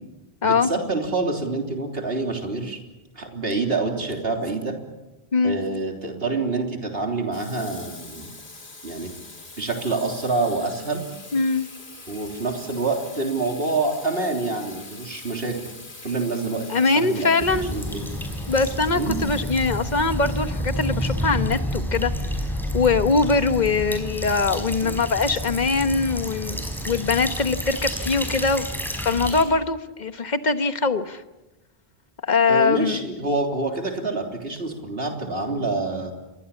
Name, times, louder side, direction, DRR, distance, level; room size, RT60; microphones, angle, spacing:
voice 1, 0.4-2.8 3.1-4.8 5.4-8.3 8.8-9.1 9.6-11.0 12.1-15.7 16.0-16.6 16.9-17.3 17.7-18.0 18.9-19.4 32.5-36.1, right 3 dB, 70° right, 3 dB, 3.7 m, -27 dB
Water tap faucet / Sink (filling or washing), 7.3-22.1, left 3 dB, 90° left, 2.9 m, -43 dB
voice 2, 11.3-11.7 16.7-17.7 18.5-22.1 22.7-26.6 26.9-28.6 29.0-31.2 32.2-33.0, left 4 dB, 45° left, 10 dB, 1.3 m, -22 dB
sound 1, 17.4-29.4, equal, ahead, 5.0 m, -29 dB
28.5 x 23.0 x 7.2 m, 1.0 s
omnidirectional pair, 1.0 m